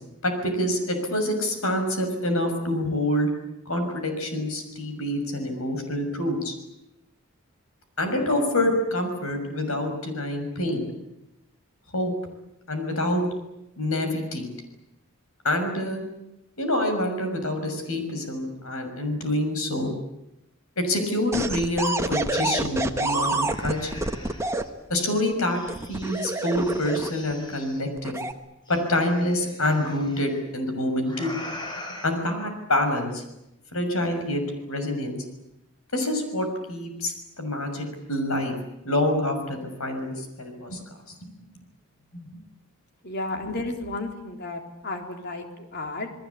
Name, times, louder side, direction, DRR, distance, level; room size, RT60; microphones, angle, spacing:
voice 1, 0.2-3.3 3.6-6.5 8.0-10.9 11.9-12.1 12.7-13.2 13.8-14.5 15.4-16.0 16.6-19.9 20.8-23.9 24.9-25.6 25.9-28.1 28.7-31.3 32.0-33.2 33.7-34.4 34.7-35.2 35.9-38.5 38.8-40.8 42.1-42.4, left 1 dB, 75° left, 6 dB, 6.6 m, -26 dB
sound 1, 21.3-24.6 25.7-27.3 28.0-28.3, right 2 dB, 15° right, 1.3 m, -27 dB
sound 2, 21.9-22.0 22.3-24.7 25.4-27.8 28.7-30.2 31.0-32.1, left 1 dB, 20° left, 5.1 m, -43 dB
voice 2, 43.0-46.1, left 2 dB, 50° left, 4 dB, 3.8 m, -33 dB
29.0 x 20.0 x 8.5 m, 0.88 s
head